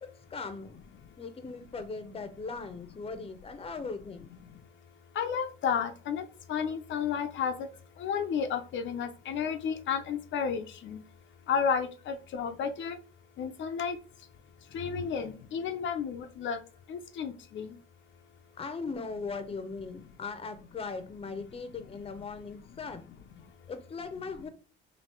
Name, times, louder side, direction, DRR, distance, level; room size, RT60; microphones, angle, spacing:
voice 1, 0.0-0.8 1.2-4.3 18.6-23.1 23.7-24.5, left 4 dB, 30° left, 0.8 m, -39 dB
voice 2, 5.2-6.2 6.5-7.7 8.0-11.0 11.5-13.0 13.4-14.0 14.7-16.6 16.9-17.7, left 7 dB, 70° left, 0.6 m, -32 dB
3.0 x 2.8 x 4.3 m
cardioid pair, 90°, 20 cm